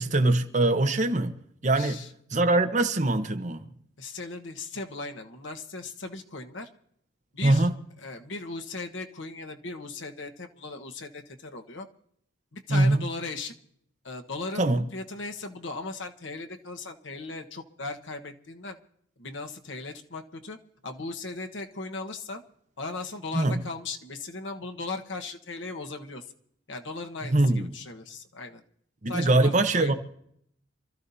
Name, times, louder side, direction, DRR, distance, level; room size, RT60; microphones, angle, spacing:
voice 1, 0.0-1.3 1.6-2.0 2.3-3.6 7.4-7.7 12.7-13.0 14.6-14.8 23.3-23.6 27.3-27.7 29.0-29.9, right 2 dB, 40° right, 1.0 m, -22 dB
voice 2, 1.7-2.1 4.0-6.7 7.3-7.7 8.0-11.9 12.5-13.6 14.0-18.8 19.2-20.6 20.8-22.4 22.8-26.3 26.7-28.6 29.1-29.9, left 3 dB, 85° left, 1.3 m, -37 dB
27.5 x 14.0 x 2.8 m
head